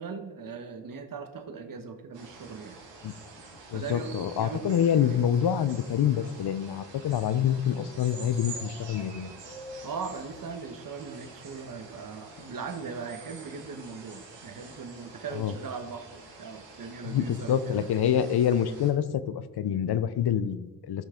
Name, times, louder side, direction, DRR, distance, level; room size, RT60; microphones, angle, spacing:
voice 1, 0.0-2.8 3.7-5.2 9.8-17.9, right 5 dB, 50° right, 6 dB, 1.2 m, -39 dB
sound 1, 2.1-18.9, right 3 dB, 85° right, 2.4 m, -47 dB
voice 2, 3.7-9.3 15.3-15.5 17.0-21.0, left 9 dB, 65° left, 14 dB, 0.7 m, -26 dB
13.5 x 5.6 x 3.8 m, 1.2 s
cardioid pair, 75°, 42 cm